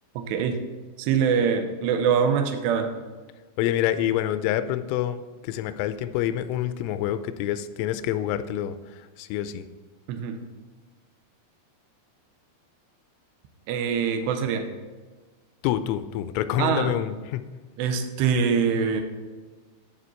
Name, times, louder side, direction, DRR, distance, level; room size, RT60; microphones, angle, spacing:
voice 1, 0.2-0.6 1.0-3.0 10.1-10.4 13.7-14.7 16.6-17.0 17.8-19.0, right 6 dB, 80° right, 6 dB, 2.8 m, -24 dB
voice 2, 3.6-8.8 9.2-9.6 15.6-17.4, left 12 dB, 90° left, 12 dB, 3.0 m, -27 dB
14.0 x 5.2 x 4.3 m, 1.3 s
omnidirectional pair, 5.4 m